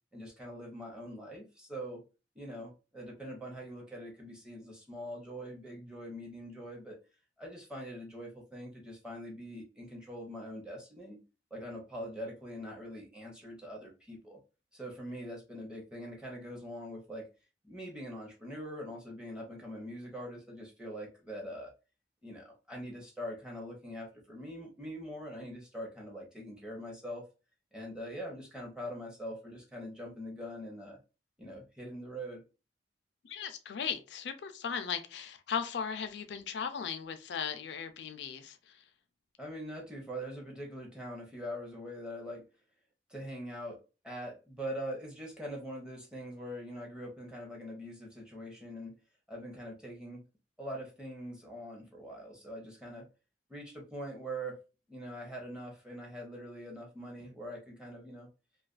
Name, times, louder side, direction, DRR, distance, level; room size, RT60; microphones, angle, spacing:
voice 1, 0.1-2.0 2.4-7.0 7.4-11.2 11.5-14.4 14.7-17.3 17.6-21.7 22.2-27.3 27.7-31.0 31.4-32.4 39.4-42.4 43.1-48.9 49.3-50.3 50.6-53.0 53.5-54.6 54.9-58.3, equal, 5° right, 0.7 m, -43 dB
voice 2, 33.2-38.8, left 7 dB, 70° left, 0.4 m, -37 dB
2.4 x 2.2 x 2.3 m
head